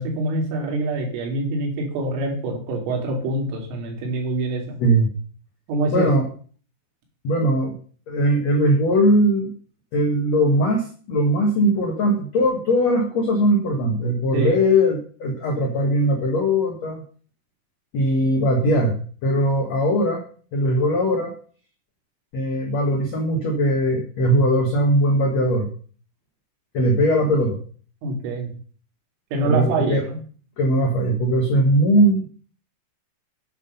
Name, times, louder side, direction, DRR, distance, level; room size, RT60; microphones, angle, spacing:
voice 1, 0.0-4.8 5.7-6.1 14.3-14.5 28.0-28.5 29.3-30.2, right 2 dB, 75° right, 2 dB, 5.3 m, -25 dB
voice 2, 4.8-5.1 5.9-6.2 7.2-7.7 8.1-9.5 9.9-17.0 17.9-18.9 19.2-20.2 20.5-21.3 22.3-25.7 26.7-27.6 29.4-30.0 30.6-32.3, equal, 85° left, 2 dB, 1.5 m, -20 dB
9.9 x 8.6 x 5.5 m, 0.43 s
omnidirectional pair, 5.8 m